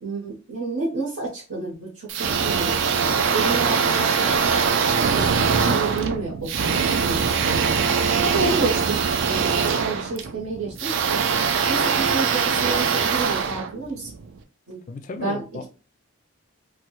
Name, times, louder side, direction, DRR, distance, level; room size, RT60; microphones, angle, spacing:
voice 1, 0.0-2.8 3.3-7.7 8.2-10.9 11.6-14.1 14.7-14.8 15.1-15.4, right 3 dB, 80° right, 1.0 m, -30 dB
sound 1, 2.1-14.3, right 6 dB, 60° right, 0.4 m, -22 dB
voice 2, 14.9-15.7, left 3 dB, 35° left, 0.3 m, -34 dB
3.0 x 2.2 x 3.0 m
head